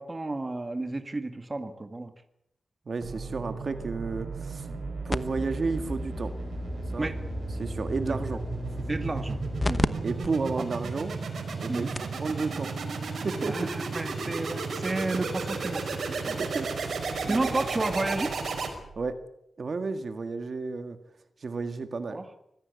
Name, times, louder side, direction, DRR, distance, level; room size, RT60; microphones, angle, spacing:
voice 1, 0.0-2.1 4.7-4.8 7.0-7.2 8.9-9.4 9.6-10.0 11.7-12.0 13.5-16.4 17.3-18.3 22.1-22.2, right 2 dB, 25° right, 8 dB, 1.8 m, -32 dB
voice 2, 2.9-4.7 5.0-6.3 6.9-7.1 7.6-8.4 8.7-8.8 10.0-11.1 11.6-12.7 13.2-13.6 16.4-17.0 17.2-17.6 19.0-19.2 19.6-21.0 21.4-22.2, right 4 dB, 55° right, 8 dB, 1.8 m, -32 dB
sound 1, 3.0-19.1, right 4 dB, 85° right, 5.0 m, -34 dB
sound 2, 5.1-9.9 10.2-10.3 11.0-11.1 11.6-11.7 12.0-12.2 13.4-13.5, left 2 dB, 25° left, 1.0 m, -33 dB
24.5 x 16.0 x 8.2 m, 0.79 s
wide cardioid pair, 110°, 0 cm